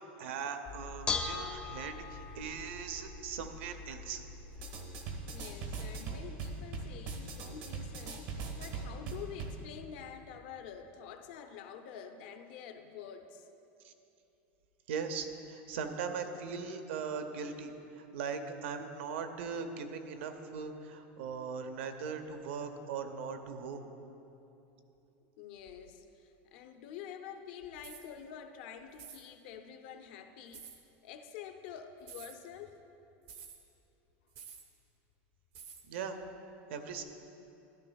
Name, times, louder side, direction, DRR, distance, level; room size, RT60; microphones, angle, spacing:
voice 1, 0.2-4.2 13.8-13.9 14.9-23.9 35.9-36.2 36.7-37.0, right 6 dB, 80° right, 7 dB, 0.8 m, -39 dB
Bell / Dishes pots and pans, 0.7-7.3, left 4 dB, 15° left, 0.3 m, -42 dB
sound 1, 4.5-9.6, right 4 dB, 55° right, 1.1 m, -41 dB
voice 2, 5.2-13.5 25.4-32.8, left 8 dB, 55° left, 7 dB, 0.6 m, -48 dB
sound 2, 27.8-28.1 28.9-29.2 30.5-30.8 32.0-32.4 33.3-33.6 34.3-34.7 35.5-35.9, right 7 dB, 35° right, 0.7 m, -49 dB
13.0 x 11.5 x 2.3 m, 2.9 s
supercardioid pair, 180°, 6 cm